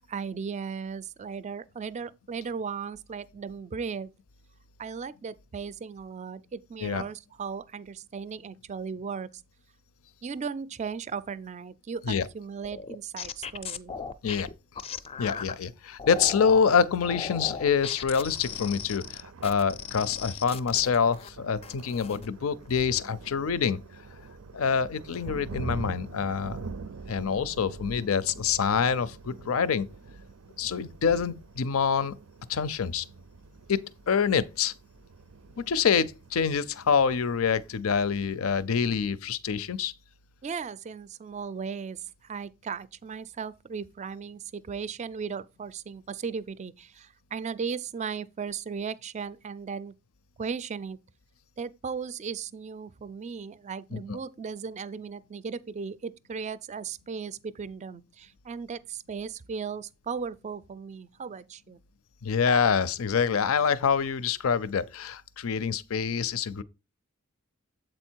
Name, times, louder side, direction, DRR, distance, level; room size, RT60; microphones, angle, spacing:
voice 1, 0.1-4.1 4.8-9.3 10.2-14.0 40.4-49.9 50.4-51.0 51.6-61.8, right 6 dB, 35° right, 0.4 m, -36 dB
sound 1, 12.6-15.5 16.0-16.7 17.0-21.3 21.6-22.3 22.7-23.0, left 6 dB, 30° left, 0.4 m, -38 dB
voice 2, 15.2-23.8 24.5-26.6 27.1-29.9 30.6-32.1 32.5-33.1 33.7-34.7 35.7-39.9 53.9-54.2 62.2-66.6, left 6 dB, 80° left, 0.5 m, -26 dB
Thunder, 18.1-37.8, right 3 dB, 90° right, 0.5 m, -45 dB
7.8 x 4.3 x 4.5 m
head